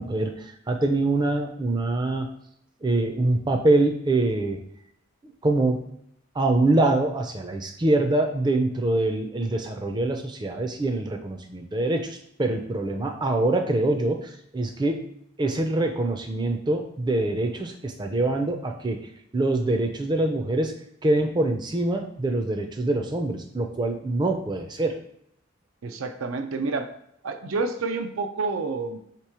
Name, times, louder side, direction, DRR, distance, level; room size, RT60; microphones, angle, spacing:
voice 1, 0.0-2.3 2.8-4.6 5.4-5.8 6.4-15.0 15.4-19.0 19.3-20.7 21.0-25.0, right 2 dB, 20° right, 5 dB, 0.5 m, -24 dB
voice 2, 25.8-26.9 27.2-29.0, right 3 dB, 85° right, 7 dB, 0.5 m, -29 dB
3.5 x 3.0 x 4.7 m, 0.72 s
head